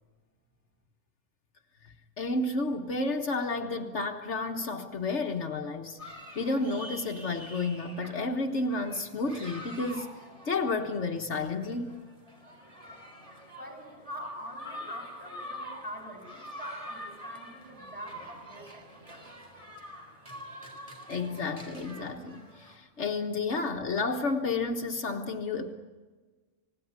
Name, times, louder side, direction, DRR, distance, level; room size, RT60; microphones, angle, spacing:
voice 1, 1.8-6.0 6.3-10.1 10.4-12.0 21.1-25.7, left 3 dB, 70° left, 4 dB, 1.7 m, -31 dB
sound 1, 6.0-22.8, equal, 30° right, 4.1 m, -46 dB
voice 2, 13.6-19.3, equal, 5° right, -1 dB, 7.8 m, -44 dB
29.5 x 18.0 x 9.6 m, 1.4 s
omnidirectional pair, 1.2 m